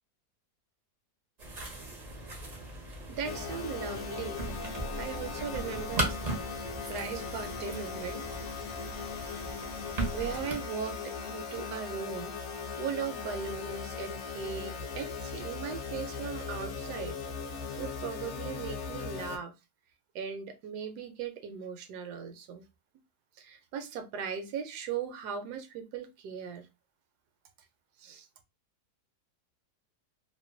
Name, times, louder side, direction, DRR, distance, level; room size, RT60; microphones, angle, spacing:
sound 1, 1.4-10.5, right 2 dB, 50° right, 0.5 m, -38 dB
voice 1, 3.1-4.5 5.0-6.2 6.7-8.2 9.7-12.3 12.8-17.2 17.5-19.5 20.1-22.6 23.4-26.7 28.0-28.3, right 6 dB, 80° right, 1.1 m, -38 dB
sound 2, 3.2-19.4, left 5 dB, 65° left, 0.7 m, -39 dB
sound 3, 7.1-12.8, equal, 15° left, 0.5 m, -54 dB
2.9 x 2.2 x 2.4 m
omnidirectional pair, 1.7 m